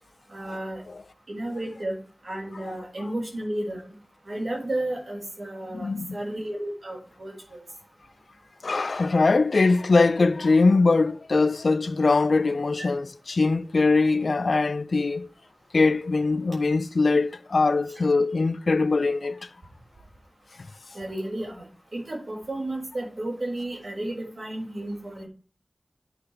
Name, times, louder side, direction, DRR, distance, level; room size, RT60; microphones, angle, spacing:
voice 1, 0.3-0.8 1.3-1.9 2.2-3.8 4.3-7.6 20.9-21.6 21.9-25.3, right 1 dB, 65° right, 6.1 m, -32 dB
voice 2, 5.7-6.2 8.6-15.3 15.7-19.5, left 3 dB, 85° left, 0.5 m, -22 dB
13.0 x 6.8 x 3.5 m
wide cardioid pair, 55°, 0 cm